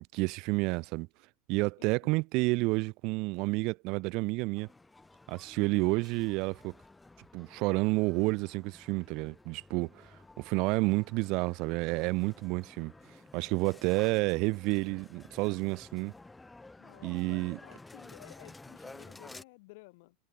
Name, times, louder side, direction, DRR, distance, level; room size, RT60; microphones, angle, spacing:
voice 1, 0.1-1.1 1.5-4.7 5.3-6.7 7.3-10.1 10.4-12.9 13.3-16.1 17.0-17.6, right 25 dB, 55° right, 0.4 m, -30 dB
sound 1, 4.5-19.4, left 2 dB, 10° left, 2.3 m, -53 dB
voice 2, 16.8-20.2, left 25 dB, 65° left, 3.3 m, -54 dB
hypercardioid pair, 100°, 0 cm